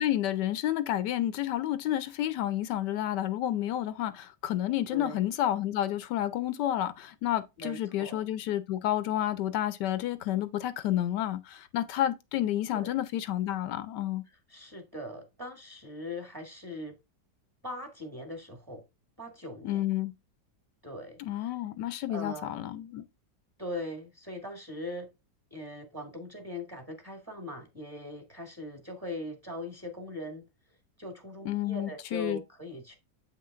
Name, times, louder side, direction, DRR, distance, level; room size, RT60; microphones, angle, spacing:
voice 1, 0.0-14.2 19.6-20.1 21.2-23.1 31.4-32.4, left 12 dB, 80° left, 1.2 m, -30 dB
voice 2, 4.9-5.2 7.6-8.2 12.7-12.9 14.5-16.9 17.6-18.8 19.2-19.8 20.8-21.5 22.1-22.5 23.6-25.1 25.5-30.4 31.0-33.0, left 1 dB, 15° right, 1.6 m, -40 dB
8.0 x 5.6 x 2.4 m
omnidirectional pair, 1.9 m